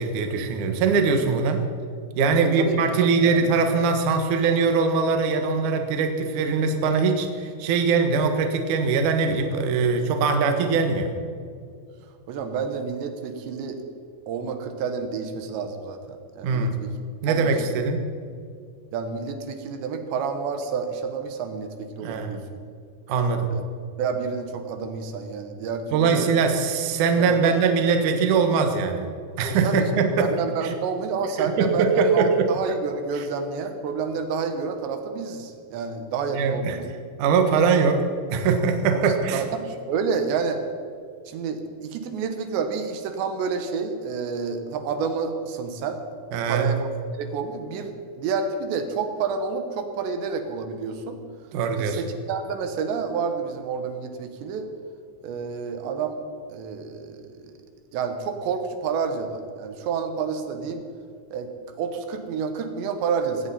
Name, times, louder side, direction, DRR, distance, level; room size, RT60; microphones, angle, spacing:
voice 1, 0.0-1.6 2.2-11.1 16.4-16.7 17.2-18.1 22.0-22.4 23.1-23.5 25.9-29.1 29.4-30.3 30.6-30.7 31.4-32.5 33.2-33.3 36.3-36.8 37.2-38.0 38.3-39.4 46.3-46.7 51.5-52.0, right 5 dB, 60° right, 5 dB, 2.3 m, -22 dB
voice 2, 2.3-3.5 12.3-13.8 14.3-16.9 17.3-17.6 18.9-22.4 23.5-23.6 24.0-26.3 27.2-27.5 29.6-36.9 39.0-40.6 41.3-46.0 46.5-51.2 51.8-54.7 55.2-56.2 56.5-57.2 57.9-60.8 61.3-61.5 61.8-63.5, right 5 dB, 80° right, 6 dB, 3.4 m, -29 dB
19.0 x 17.0 x 4.3 m, 2.2 s
omnidirectional pair, 5.1 m